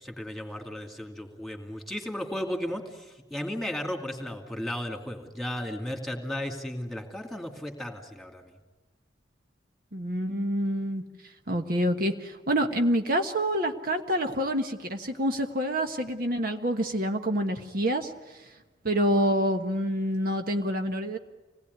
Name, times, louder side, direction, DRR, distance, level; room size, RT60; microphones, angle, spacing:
voice 1, 0.0-8.5, left 1 dB, ahead, 4 dB, 2.5 m, -35 dB
voice 2, 9.9-11.0 11.5-18.4 18.8-21.2, equal, 55° right, 5 dB, 1.4 m, -27 dB
26.5 x 19.0 x 9.6 m, 1.2 s
head